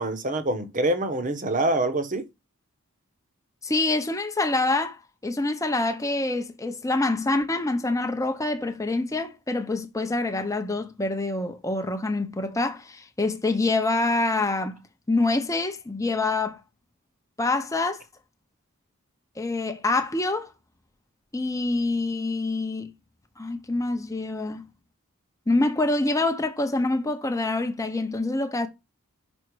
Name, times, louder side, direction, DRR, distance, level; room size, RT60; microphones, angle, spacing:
voice 1, 0.0-2.2, right 2 dB, 40° right, 1.1 m, -25 dB
voice 2, 3.6-14.8 15.1-16.6 17.4-18.0 19.4-20.5 21.3-22.9 23.4-24.7 25.5-28.7, left 2 dB, 15° left, 0.7 m, -26 dB
5.6 x 5.3 x 4.7 m
head